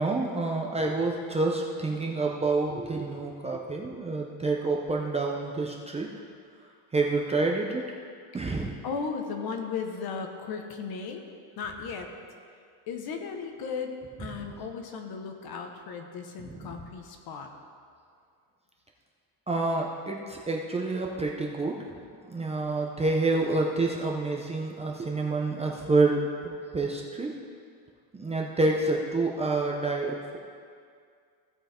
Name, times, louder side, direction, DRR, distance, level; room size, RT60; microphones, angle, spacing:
voice 1, 0.0-6.1 6.9-7.8 8.3-8.8 16.4-16.8 19.5-22.0 22.3-27.3 28.1-30.4, right 3 dB, 15° right, -1 dB, 0.6 m, -28 dB
voice 2, 8.8-11.3 11.6-12.1 12.9-13.9 14.2-17.5, left 5 dB, 50° left, 4 dB, 1.2 m, -36 dB
16.0 x 5.6 x 4.3 m, 2.2 s
cardioid pair, 145°, 47 cm